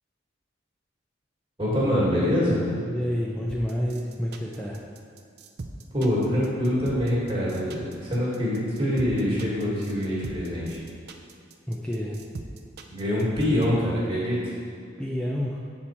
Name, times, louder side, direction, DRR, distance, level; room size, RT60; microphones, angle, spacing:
voice 1, 1.6-2.6 5.9-10.8 12.9-14.4, equal, 25° right, -6 dB, 1.7 m, -25 dB
voice 2, 2.9-4.8 11.7-12.2 15.0-15.6, equal, 5° left, -5 dB, 0.5 m, -29 dB
sound 1, 3.5-13.7, right 3 dB, 55° right, 0.5 m, -40 dB
7.9 x 4.3 x 4.3 m, 2.4 s
head